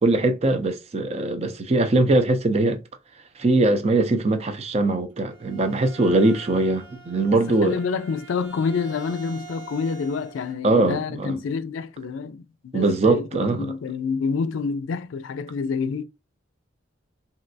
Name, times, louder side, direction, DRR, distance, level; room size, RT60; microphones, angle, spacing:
voice 1, 0.0-2.8 3.4-7.8 10.6-11.4 12.7-13.7, right 2 dB, 35° right, 0.4 m, -21 dB
Bowed string instrument, 5.1-10.6, right 4 dB, 80° right, 1.2 m, -45 dB
voice 2, 7.3-16.0, left 5 dB, 85° left, 0.3 m, -28 dB
3.1 x 2.7 x 2.6 m
head